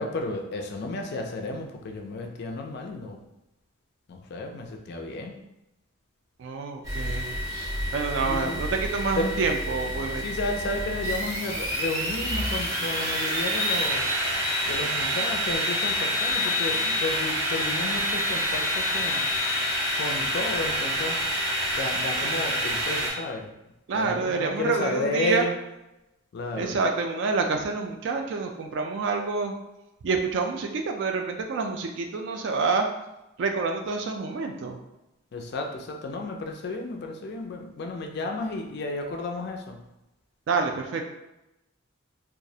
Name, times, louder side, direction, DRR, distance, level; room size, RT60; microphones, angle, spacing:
voice 1, 0.0-3.2 4.1-5.4 8.2-8.6 9.2-9.4 10.2-14.0 14.7-19.3 19.9-21.3 21.8-23.5 23.9-25.5 26.3-26.8 35.3-39.8, left 2 dB, 50° left, 3 dB, 0.3 m, -32 dB
voice 2, 6.4-7.4 7.9-10.3 23.9-25.4 26.6-29.5 30.0-32.9 33.4-34.8 40.5-41.1, right 4 dB, 60° right, 3 dB, 0.3 m, -27 dB
sound 1, 6.8-23.1, equal, 15° right, 0.6 m, -27 dB
2.3 x 2.0 x 2.7 m, 0.93 s
head